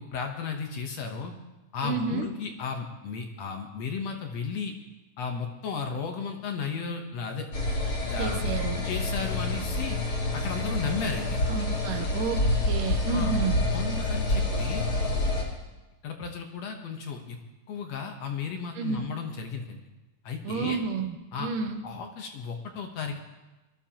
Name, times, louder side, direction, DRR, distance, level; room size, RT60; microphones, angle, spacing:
voice 1, 0.0-1.3 1.7-4.7 5.2-7.5 8.1-8.4 8.8-10.0 10.3-11.4 13.1-13.3 13.7-14.8 16.0-17.4 17.7-19.8 20.2-20.8 21.3-21.5 21.8-23.2, left 5 dB, 65° left, 3 dB, 1.8 m, -34 dB
voice 2, 1.8-2.3 8.2-8.9 11.5-13.6 18.8-19.1 20.4-21.8, right 5 dB, 75° right, 5 dB, 2.4 m, -31 dB
sound 1, 7.5-15.4, left 2 dB, 40° left, 2.9 m, -28 dB
22.0 x 13.5 x 2.9 m, 1.1 s
omnidirectional pair, 4.0 m